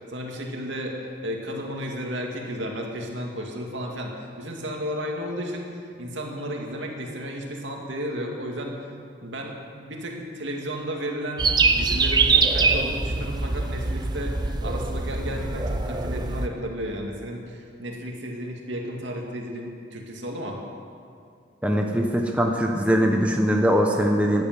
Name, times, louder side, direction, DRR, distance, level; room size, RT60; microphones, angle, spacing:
voice 1, 0.1-5.7 6.0-8.7 9.2-9.6 9.8-14.3 14.6-20.6, equal, 70° right, 0 dB, 2.3 m, -33 dB
sound 1, 11.4-16.5, right 4 dB, 20° right, 0.6 m, -23 dB
voice 2, 21.6-24.5, equal, 5° right, 1 dB, 0.9 m, -21 dB
15.0 x 10.5 x 7.6 m, 2.3 s
head